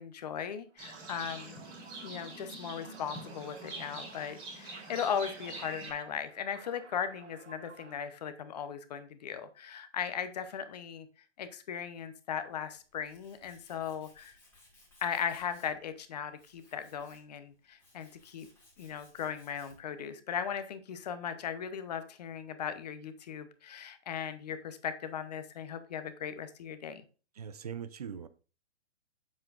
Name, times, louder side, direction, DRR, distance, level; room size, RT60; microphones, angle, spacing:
voice 1, 0.0-1.6 2.0-11.1 11.4-14.4 15.0-18.5 18.8-27.0, left 8 dB, 35° left, 0.8 m, -38 dB
Livestock farm animals working animals, 0.8-5.9, right 2 dB, 15° right, 2.0 m, -45 dB
sound 1, 0.8-8.2, right 7 dB, 70° right, 1.2 m, -55 dB
Tools, 12.5-20.0, left 1 dB, 5° left, 1.9 m, -63 dB
voice 2, 27.4-28.3, right 7 dB, 35° right, 0.4 m, -41 dB
8.1 x 7.4 x 2.5 m
hypercardioid pair, 160°, 36 cm